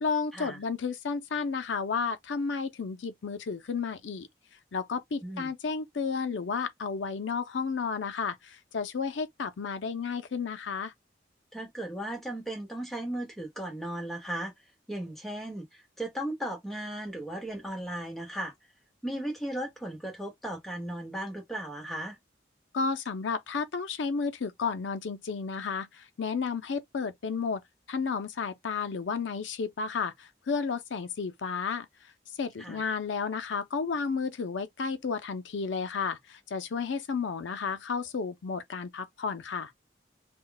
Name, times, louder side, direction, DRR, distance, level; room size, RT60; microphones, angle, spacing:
voice 1, 0.0-4.3 4.7-10.9 22.7-27.6 27.9-31.9 32.4-39.7, left 5 dB, 90° left, 0.5 m, -32 dB
voice 2, 5.2-5.5 11.5-14.5 14.9-15.7 16.0-18.5 19.0-22.2 32.6-32.8, right 1 dB, ahead, 1.0 m, -36 dB
2.2 x 2.1 x 3.8 m
head